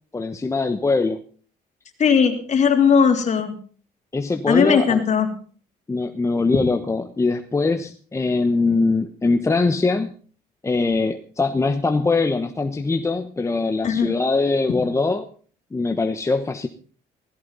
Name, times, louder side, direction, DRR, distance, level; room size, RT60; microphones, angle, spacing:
voice 1, 0.1-1.2 4.1-5.0 5.9-10.1 10.6-15.3 15.7-16.7, left 3 dB, 15° left, 7 dB, 1.1 m, -22 dB
voice 2, 2.0-3.5 4.5-5.3 13.8-14.1, left 6 dB, 45° left, 5 dB, 3.4 m, -18 dB
17.0 x 15.0 x 4.1 m, 0.43 s
cardioid pair, 110°, 17 cm